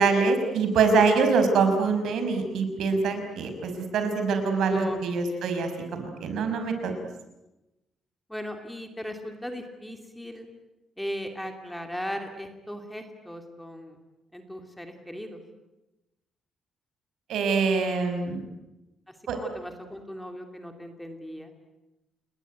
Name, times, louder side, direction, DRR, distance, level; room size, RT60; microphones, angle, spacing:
voice 1, 0.0-6.9 17.3-18.4 19.3-19.4, right 4 dB, 70° right, 7 dB, 5.5 m, -24 dB
voice 2, 4.7-5.0 8.3-10.5 11.0-14.0 14.3-15.4 19.1-21.5, equal, 5° left, 5 dB, 2.7 m, -37 dB
29.5 x 21.0 x 9.4 m, 0.97 s
cardioid pair, 170°, 0 cm